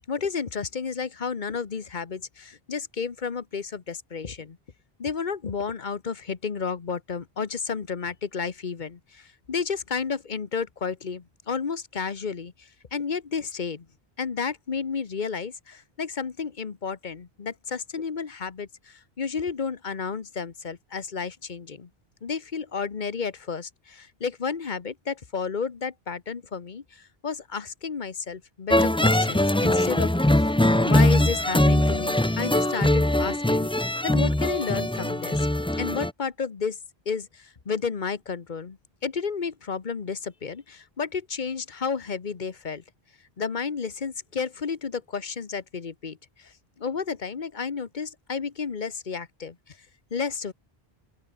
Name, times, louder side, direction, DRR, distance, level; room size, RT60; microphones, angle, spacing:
voice 1, 0.1-4.6 5.0-13.9 14.2-21.9 22.2-30.3 30.7-35.5 35.8-36.8 37.1-42.8 43.4-49.8 50.1-50.5, left 5 dB, 50° left, 1.3 m, -32 dB
sound 1, 28.7-36.1, left 1 dB, 5° left, 0.5 m, -22 dB
open air
omnidirectional pair, 1.0 m